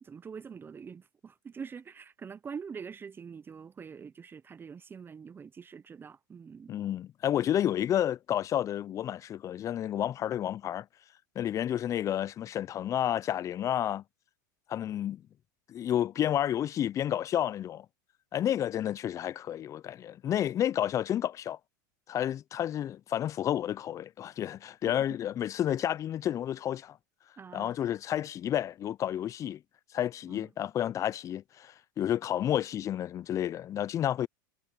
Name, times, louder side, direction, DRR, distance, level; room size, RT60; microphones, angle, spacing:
voice 1, 0.0-6.8 27.4-27.8 30.3-30.5, right 6 dB, 20° right, 0.7 m, -45 dB
voice 2, 6.7-10.9 11.4-14.0 14.7-15.2 15.7-17.9 18.3-21.6 22.1-27.0 27.5-29.6 29.9-34.3, left 11 dB, 30° left, 0.5 m, -30 dB
hypercardioid pair, 105°, 11 cm